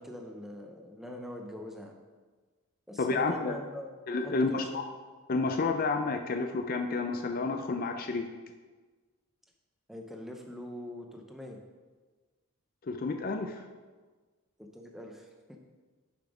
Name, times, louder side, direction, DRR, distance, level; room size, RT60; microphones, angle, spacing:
voice 1, 0.0-2.0 2.9-3.9 4.2-4.8 9.9-11.6 14.6-15.3, left 1 dB, ahead, 2 dB, 0.7 m, -43 dB
voice 2, 3.0-3.5 4.1-4.8 5.3-8.3 12.8-13.6, left 3 dB, 40° left, 5 dB, 0.4 m, -30 dB
7.1 x 5.7 x 4.9 m, 1.4 s
head